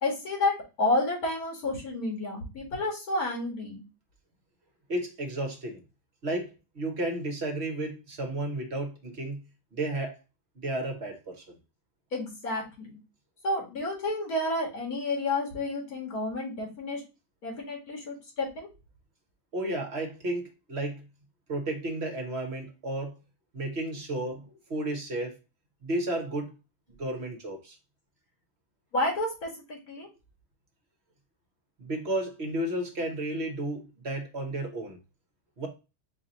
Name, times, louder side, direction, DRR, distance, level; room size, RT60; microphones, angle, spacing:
voice 1, 0.0-3.8 12.1-12.9 13.4-17.0 17.4-18.7 28.9-30.1, left 2 dB, 85° left, 2.4 m, -30 dB
voice 2, 4.9-5.8 6.2-9.4 9.7-10.2 10.6-11.6 19.5-21.0 21.5-23.1 23.5-25.3 25.8-26.5 27.0-27.8 31.8-35.0 35.6-35.7, right 1 dB, 50° right, 1.3 m, -32 dB
4.5 x 2.9 x 3.9 m
omnidirectional pair, 1.5 m